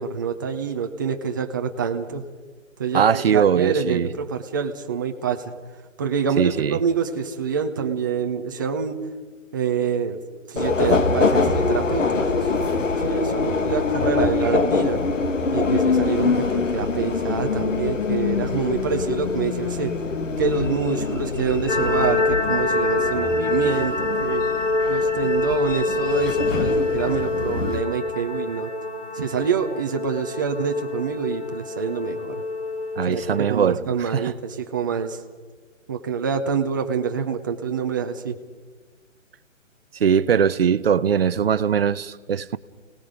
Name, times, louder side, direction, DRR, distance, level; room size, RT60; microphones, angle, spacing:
voice 1, 0.0-2.2 2.8-5.5 6.0-9.0 9.5-10.2 10.5-12.5 12.8-15.0 15.5-19.9 20.4-24.4 24.9-28.7 29.1-32.4 33.0-35.2 35.9-38.4, right 6 dB, 15° right, 0.7 m, -26 dB
voice 2, 2.9-4.1 6.4-6.8 33.0-33.8 34.1-34.2 40.0-42.6, right 7 dB, 50° right, 0.8 m, -20 dB
Subway metro underground, 10.6-27.8, left 4 dB, 70° left, 2.1 m, -24 dB
sound 1, 21.7-33.5, left 2 dB, 50° left, 4.6 m, -25 dB
28.5 x 19.0 x 5.1 m
hypercardioid pair, 160°, 39 cm